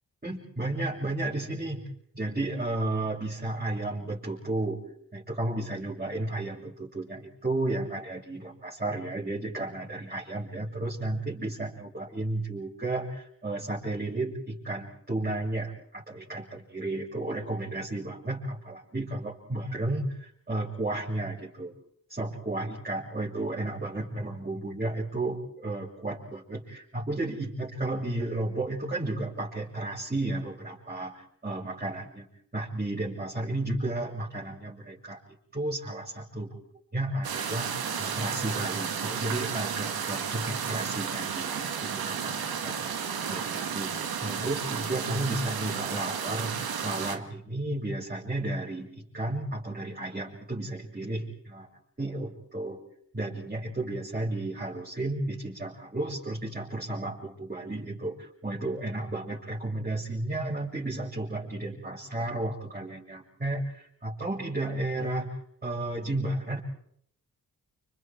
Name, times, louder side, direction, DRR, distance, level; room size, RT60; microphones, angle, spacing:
voice 1, 0.2-1.9 2.1-4.8 5.1-21.7 22.1-32.3 32.5-35.2 35.5-36.6 36.9-42.8 43.3-51.7 52.0-52.8 53.1-65.4 65.6-66.6, right 2 dB, 25° right, -6 dB, 7.5 m, -33 dB
sound 1, 37.2-47.2, right 7 dB, 85° right, 2.1 m, -32 dB
30.0 x 27.0 x 4.7 m, 0.67 s
cardioid pair, 60°, 36 cm